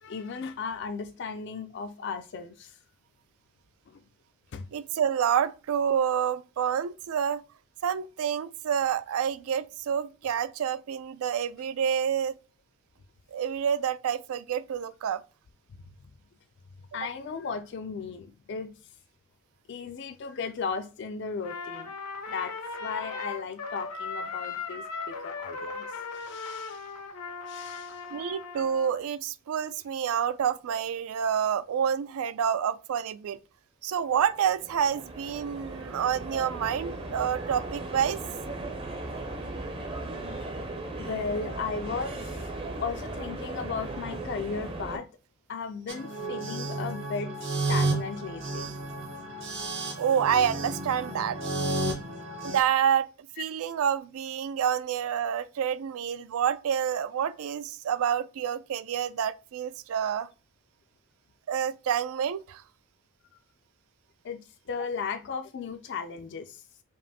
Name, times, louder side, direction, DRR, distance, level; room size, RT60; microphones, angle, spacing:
voice 1, 0.0-2.8 3.9-4.0 4.5-4.7 16.9-18.7 19.7-21.9 22.3-22.5 22.8-26.9 27.5-28.0 40.3-40.5 41.0-45.1 45.5-47.3 47.7-48.7 64.2-66.6, left 5 dB, 50° left, 0.3 m, -36 dB
voice 2, 4.7-7.4 7.8-12.4 13.3-15.2 28.1-33.4 33.8-38.2 50.0-51.4 52.4-60.3 61.5-62.6, right 8 dB, 75° right, 0.3 m, -28 dB
Trumpet, 21.4-29.0, left 4 dB, 90° left, 0.8 m, -38 dB
sound 1, 34.1-45.0, right 2 dB, 25° right, 0.5 m, -37 dB
sound 2, 45.9-52.6, right 2 dB, 55° right, 0.9 m, -32 dB
5.3 x 2.5 x 2.7 m
head